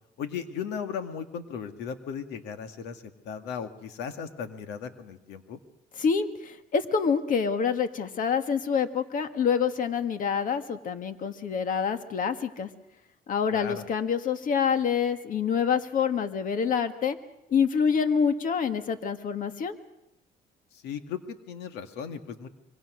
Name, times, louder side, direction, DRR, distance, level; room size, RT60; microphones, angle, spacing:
voice 1, 0.2-5.6 13.5-13.8 20.7-22.5, left 7 dB, 85° left, 8 dB, 2.0 m, -36 dB
voice 2, 6.0-12.7 13.3-17.2 17.5-19.7, left 6 dB, 55° left, 9 dB, 1.8 m, -26 dB
26.0 x 23.5 x 6.4 m, 0.86 s
cardioid pair, 110°, 17 cm